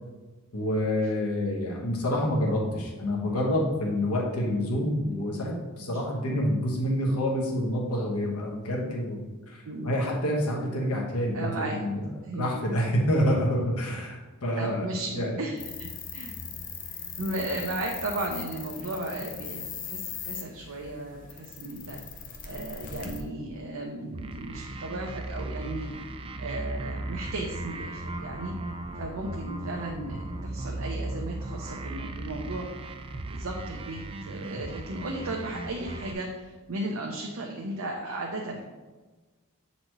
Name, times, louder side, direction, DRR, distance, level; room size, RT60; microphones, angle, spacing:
voice 1, 0.5-12.0 12.3-15.4, equal, 85° left, -2 dB, 1.2 m, -28 dB
voice 2, 11.3-11.8 12.3-12.5 14.6-16.3 16.9-22.0 22.4-25.9 26.4-28.5 28.9-32.7 33.3-38.6, right 2 dB, 65° right, 0 dB, 0.6 m, -35 dB
sound 1, 15.6-23.2, left 6 dB, 35° left, 0.6 m, -39 dB
sound 2, 24.1-36.1, right 2 dB, 25° right, 0.3 m, -37 dB
7.7 x 4.1 x 3.0 m, 1.3 s
head